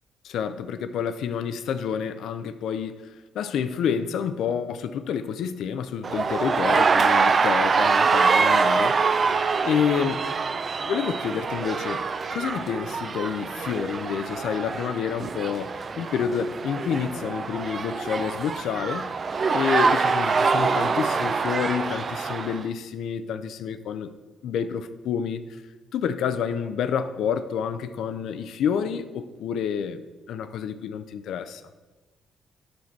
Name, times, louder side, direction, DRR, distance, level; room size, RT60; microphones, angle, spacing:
voice 1, 0.2-3.0 3.3-9.0 9.6-10.3 10.9-12.0 12.3-19.1 19.5-24.1 24.4-25.4 25.9-30.0 30.3-31.6, left 7 dB, 70° left, 0.5 m, -28 dB
sound 1, 6.0-22.6, right 4 dB, 45° right, 0.4 m, -24 dB
8.7 x 5.7 x 4.5 m
hypercardioid pair, 50°, 0 cm